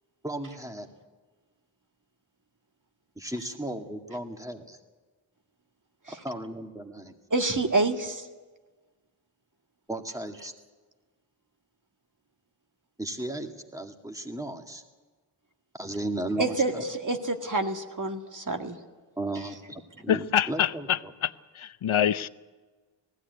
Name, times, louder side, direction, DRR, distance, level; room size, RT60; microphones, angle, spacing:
voice 1, 0.2-0.9 3.2-4.8 6.2-7.2 9.9-10.5 13.0-14.8 15.7-16.9 19.2-21.1, right 1 dB, 5° right, 2.1 m, -35 dB
voice 2, 7.3-8.2 16.4-18.8, right 2 dB, 40° right, 2.0 m, -27 dB
voice 3, 20.1-22.3, left 10 dB, 90° left, 0.7 m, -26 dB
19.5 x 16.0 x 9.4 m
wide cardioid pair, 75°, 47 cm